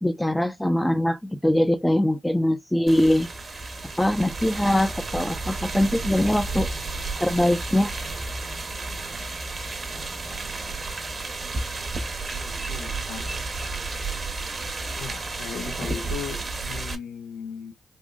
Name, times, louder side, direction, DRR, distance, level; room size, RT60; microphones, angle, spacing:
voice 1, 0.0-3.3 4.0-6.7 7.2-7.9, left 1 dB, 10° left, 0.6 m, -22 dB
sound 1, 2.9-17.0, right 3 dB, 45° right, 1.0 m, -32 dB
voice 2, 12.3-13.4 15.0-17.7, left 7 dB, 85° left, 0.9 m, -37 dB
3.6 x 2.5 x 2.4 m
supercardioid pair, 45°, 0 cm